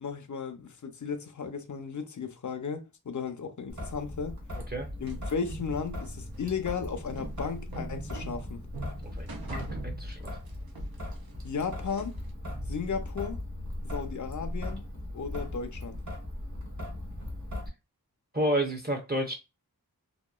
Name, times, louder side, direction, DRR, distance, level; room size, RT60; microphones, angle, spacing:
voice 1, 0.0-4.4 5.0-8.6 11.4-12.1 12.7-13.4 13.8-14.8 15.1-16.0, left 6 dB, 50° left, 0.6 m, -35 dB
Traffic noise roadway noise / Drip / Trickle dribble, 3.7-17.7, left 1 dB, 50° right, 1.0 m, -38 dB
sound 1, 5.1-10.5 10.8-12.3, right 3 dB, 70° right, 0.6 m, -43 dB
voice 2, 9.0-10.4 18.3-19.3, right 1 dB, 25° right, 0.7 m, -31 dB
2.9 x 2.2 x 2.3 m
wide cardioid pair, 55°, 38 cm